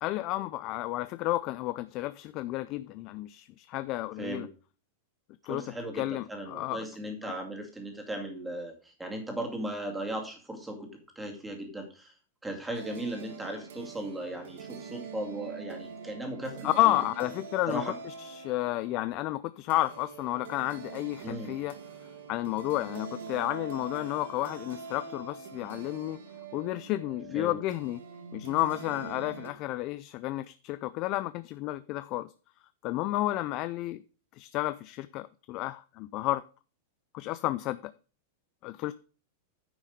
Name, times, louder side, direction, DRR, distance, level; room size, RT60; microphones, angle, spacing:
voice 1, 0.0-4.5 5.4-5.6 5.9-6.9 7.2-7.3 16.6-21.8 22.3-26.2 26.5-28.0 28.3-32.3 32.8-34.0 34.4-36.4 37.1-37.9 38.6-38.9, left 17 dB, 35° left, 0.4 m, -31 dB
voice 2, 5.5-10.9 11.2-12.1 12.4-17.0 17.7-18.0 21.2-21.6 27.3-27.6, right 1 dB, 5° right, 2.4 m, -37 dB
sound 1, 12.7-29.5, right 5 dB, 75° right, 2.1 m, -44 dB
9.9 x 6.3 x 5.1 m
supercardioid pair, 155°, 0 cm